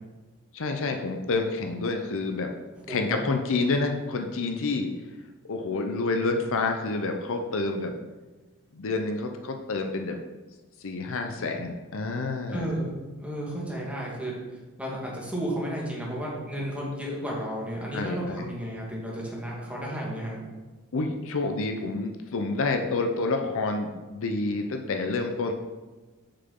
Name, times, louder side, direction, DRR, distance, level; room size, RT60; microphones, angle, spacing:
voice 1, 0.5-2.5 2.9-4.9 5.5-8.0 8.7-10.2 10.8-12.8 17.9-18.5 20.9-25.5, left 3 dB, 65° left, 5 dB, 0.6 m, -28 dB
voice 2, 2.7-3.2 12.5-14.3 14.8-20.4, equal, 5° right, -4 dB, 1.6 m, -33 dB
6.5 x 5.8 x 3.8 m, 1.2 s
head